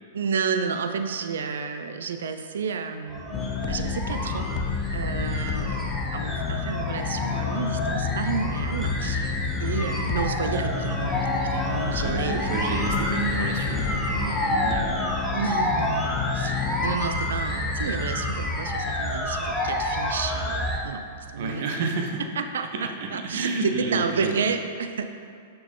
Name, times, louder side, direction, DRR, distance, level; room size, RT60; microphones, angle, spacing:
voice 1, 0.1-4.5 4.9-5.8 6.1-9.3 9.6-12.9 15.3-21.0 21.3-21.9 22.4-25.0, right 5 dB, 85° right, 7 dB, 0.4 m, -31 dB
sound 1, 3.1-20.8, left 1 dB, 5° left, 1.1 m, -28 dB
sound 2, 3.3-17.0, left 10 dB, 40° left, 0.3 m, -32 dB
voice 2, 9.6-10.0 12.0-15.2 21.4-22.2 22.7-24.4, right 3 dB, 60° right, 2 dB, 1.0 m, -31 dB
Bowed string instrument, 10.5-15.0, equal, 15° right, 1.2 m, -40 dB
6.2 x 6.0 x 3.8 m, 2.4 s
hypercardioid pair, 125°, 0 cm